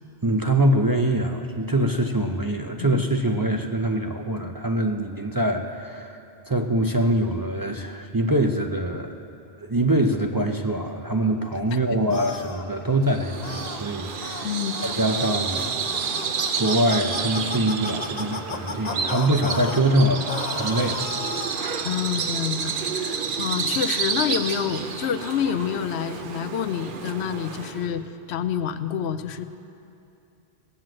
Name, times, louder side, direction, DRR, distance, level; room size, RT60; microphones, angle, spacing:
voice 1, 0.2-6.2 6.5-9.1 9.6-14.5 14.8-15.8 16.6-21.6, right 1 dB, 30° right, 3 dB, 0.4 m, -24 dB
sound 1, 11.1-28.1, right 2 dB, 10° left, 1.2 m, -48 dB
sound 2, 12.1-12.6 13.4-13.8 14.2-14.5 14.7-14.9 15.2-19.8 20.3-21.7, left 5 dB, 45° left, 0.8 m, -34 dB
Bird vocalization bird call bird song, 13.1-27.9, right 6 dB, 55° right, 0.8 m, -30 dB
voice 2, 21.8-28.0 28.3-29.5, left 8 dB, 85° left, 12 dB, 0.9 m, -28 dB
17.0 x 7.6 x 7.5 m, 2.6 s
omnidirectional pair, 1.1 m